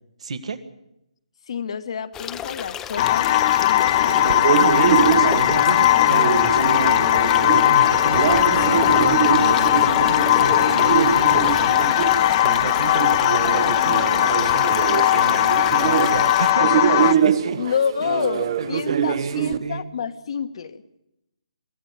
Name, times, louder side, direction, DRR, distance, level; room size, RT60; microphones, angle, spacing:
voice 1, 0.2-0.6 4.5-7.0 7.4-11.9 12.4-17.6 18.0-19.9, right 5 dB, 60° right, 11 dB, 1.8 m, -30 dB
voice 2, 1.5-3.9 17.6-20.8, left 7 dB, 55° left, 10 dB, 1.4 m, -28 dB
sound 1, 2.1-16.5, left 10 dB, 15° left, 0.9 m, -33 dB
sound 2, 3.0-17.1, left 13 dB, 35° left, 1.0 m, -18 dB
sound 3, 4.1-19.6, right 9 dB, 40° right, 1.1 m, -24 dB
23.5 x 16.0 x 8.5 m, 0.86 s
hypercardioid pair, 150°, 4 cm